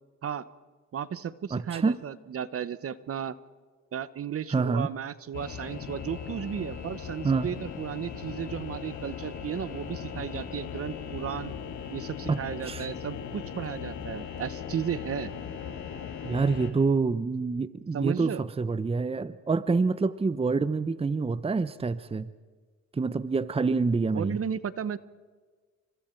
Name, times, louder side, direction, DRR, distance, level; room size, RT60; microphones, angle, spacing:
voice 1, 0.9-3.3 3.9-11.5 11.9-15.3 17.9-18.5 24.1-25.0, right 8 dB, 50° right, 15 dB, 1.1 m, -34 dB
voice 2, 1.5-2.0 4.5-4.9 7.2-7.5 12.3-12.4 12.7-12.9 16.2-22.3 22.9-24.4, right 4 dB, 20° right, 15 dB, 0.8 m, -27 dB
sound 1, 5.3-16.7, left 7 dB, 80° left, 4.0 m, -38 dB
29.5 x 26.5 x 4.6 m, 1.4 s
cardioid pair, 90°, 30 cm